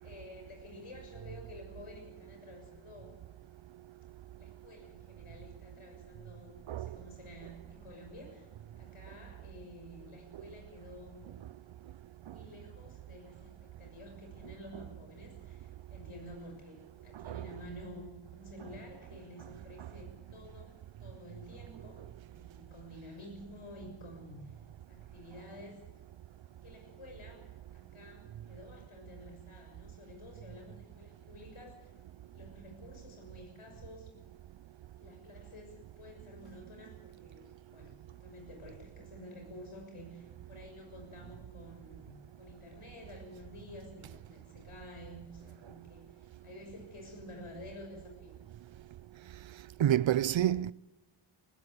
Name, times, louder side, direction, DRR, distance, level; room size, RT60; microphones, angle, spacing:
voice 1, 0.0-3.2 4.4-8.5 8.8-11.3 12.2-24.6 24.9-25.8 26.6-27.5 27.7-31.9 32.3-34.1 35.0-48.4, left 1 dB, 80° left, 6.7 m, -51 dB
voice 2, 49.8-50.7, right 11 dB, 65° right, 0.6 m, -28 dB
20.5 x 15.5 x 8.3 m
wide cardioid pair, 75°, 50 cm